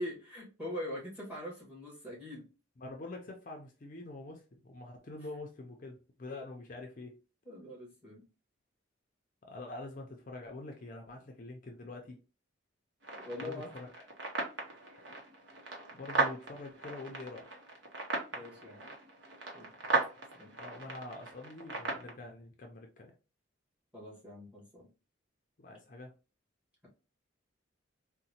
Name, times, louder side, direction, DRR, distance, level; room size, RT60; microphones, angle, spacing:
voice 1, 0.0-2.4 7.4-8.2 13.2-13.7 18.3-18.9 19.5-19.7 20.4-20.5 23.9-24.9, left 1 dB, 10° right, 1.4 m, -42 dB
voice 2, 2.8-7.2 9.4-12.2 13.4-14.0 15.9-17.5 19.8-20.0 20.3-23.1 25.6-26.1, left 2 dB, 45° left, 0.5 m, -46 dB
sound 1, 13.0-22.1, right 3 dB, 60° right, 0.8 m, -37 dB
3.9 x 2.1 x 2.7 m
head